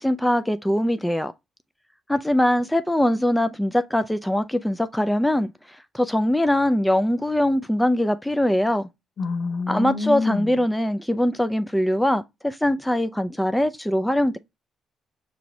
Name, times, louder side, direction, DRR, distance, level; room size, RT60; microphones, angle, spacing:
voice 1, 0.0-1.3 2.1-5.5 5.9-8.9 9.7-14.4, left 1 dB, 5° left, 0.3 m, -22 dB
voice 2, 9.2-10.5, left 4 dB, 60° left, 0.8 m, -27 dB
5.7 x 2.6 x 2.9 m
cardioid pair, 90°, 0 cm